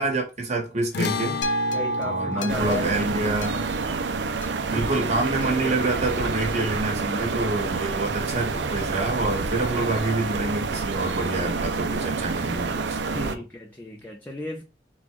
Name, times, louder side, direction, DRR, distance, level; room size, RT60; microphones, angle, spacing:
voice 1, 0.0-1.4 2.0-3.7 4.7-13.3, right 2 dB, 40° right, 1.5 m, -27 dB
sound 1, 0.9-7.5, left 5 dB, 60° left, 0.4 m, -35 dB
sound 2, 1.4-5.7 6.4-6.5, right 2 dB, 85° left, 0.8 m, -32 dB
voice 2, 1.7-3.1 4.7-4.9 13.1-14.6, left 2 dB, 10° left, 0.6 m, -35 dB
sound 3, 2.5-13.4, right 4 dB, 75° right, 0.6 m, -28 dB
4.1 x 2.4 x 4.5 m
head